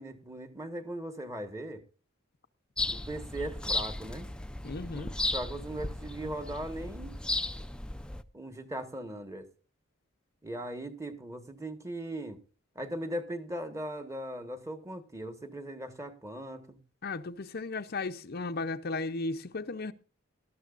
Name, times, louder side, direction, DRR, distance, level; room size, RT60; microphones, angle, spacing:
voice 1, 0.0-1.8 2.9-4.3 4.9-7.1 8.3-9.5 10.4-12.4 12.7-16.8, right 1 dB, 15° right, 1.4 m, -39 dB
sound 1, 2.8-8.2, left 2 dB, 5° left, 0.5 m, -35 dB
voice 2, 4.6-5.1 17.0-19.9, left 3 dB, 45° left, 0.6 m, -35 dB
19.0 x 13.0 x 2.5 m
head